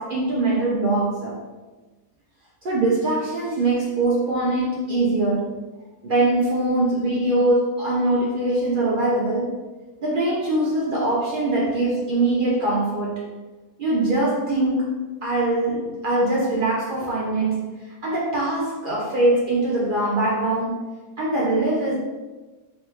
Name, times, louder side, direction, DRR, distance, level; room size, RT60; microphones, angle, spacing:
voice 1, 0.0-1.4 2.6-5.6 6.0-9.5 10.0-13.3 13.8-17.6 18.0-20.8 21.2-22.0, right 2 dB, 65° right, -6 dB, 0.5 m, -22 dB
3.4 x 2.3 x 2.9 m, 1.2 s
omnidirectional pair, 1.6 m